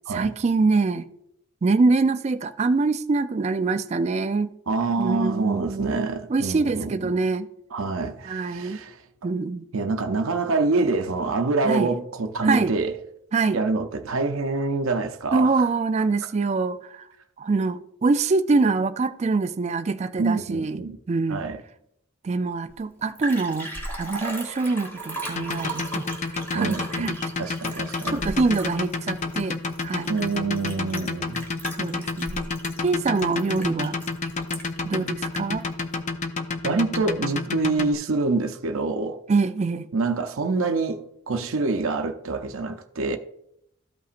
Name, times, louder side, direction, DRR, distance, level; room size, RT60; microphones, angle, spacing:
voice 1, 0.1-1.1 1.6-4.5 5.0-7.5 8.2-8.8 9.2-9.7 11.6-11.9 12.4-12.7 13.3-13.6 15.3-17.1 17.4-20.8 21.1-21.4 22.2-23.7 24.0-26.1 26.5-27.1 28.1-30.1 31.7-32.5 32.8-34.0 34.8-35.7 39.3-39.9, right 3 dB, 30° right, 0.3 m, -24 dB
voice 2, 4.7-7.1 7.7-9.0 9.7-12.9 13.5-15.5 20.2-21.0 21.3-21.6 26.5-28.2 30.1-31.4 36.6-39.2 39.9-43.2, right 3 dB, 80° right, 0.6 m, -26 dB
Liquid, 22.7-22.8 23.0-34.9 35.4-35.5, right 1 dB, 10° left, 1.5 m, -37 dB
sound 1, 25.4-37.9, left 3 dB, 35° left, 0.5 m, -29 dB
13.5 x 5.6 x 2.5 m
head